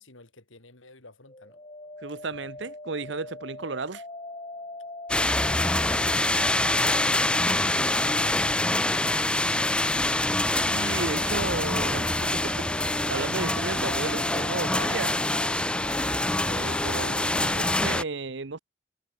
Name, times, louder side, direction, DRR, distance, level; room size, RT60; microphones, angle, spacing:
voice 1, 0.0-1.6 13.4-13.7, left 2 dB, 80° left, 4.2 m, -52 dB
sound 1, 1.3-8.6 10.6-17.9, left 2 dB, 30° left, 3.0 m, -41 dB
voice 2, 2.0-4.0 10.5-12.3 12.8-15.1 16.5-18.6, right 3 dB, 65° right, 0.9 m, -34 dB
sound 2, 5.1-18.0, left 1 dB, 5° left, 0.3 m, -25 dB
head